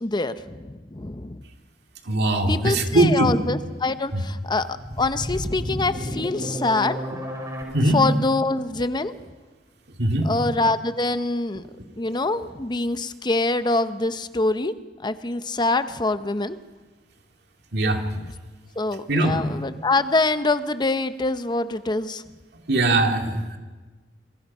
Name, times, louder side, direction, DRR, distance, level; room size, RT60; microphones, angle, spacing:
voice 1, 0.0-1.4 2.5-7.0 7.9-9.1 10.2-11.6 12.0-14.7 15.0-16.6 18.2-18.3 18.8-22.2, left 2 dB, 25° left, 11 dB, 0.7 m, -25 dB
voice 2, 2.1-3.3 7.7-8.0 10.0-10.3 17.7-18.0 19.1-19.4 22.7-23.6, right 2 dB, 65° right, 4 dB, 2.4 m, -20 dB
sound 1, 4.5-7.6, equal, 20° right, 5.3 m, -31 dB
27.5 x 23.0 x 5.5 m, 1.3 s
head